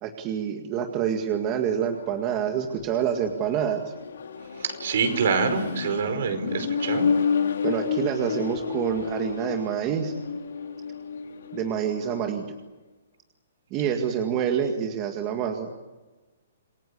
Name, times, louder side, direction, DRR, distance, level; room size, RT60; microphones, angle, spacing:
voice 1, 0.0-3.8 6.6-6.7 7.6-10.1 11.5-12.4 13.7-15.7, right 8 dB, 25° right, 4 dB, 2.0 m, -27 dB
Accelerating revving vroom, 1.8-12.3, left 6 dB, 80° left, 3.2 m, -31 dB
voice 2, 4.6-7.1, right 5 dB, 60° right, 8 dB, 5.0 m, -26 dB
27.5 x 18.5 x 8.5 m, 1.2 s
hypercardioid pair, 160°, 0 cm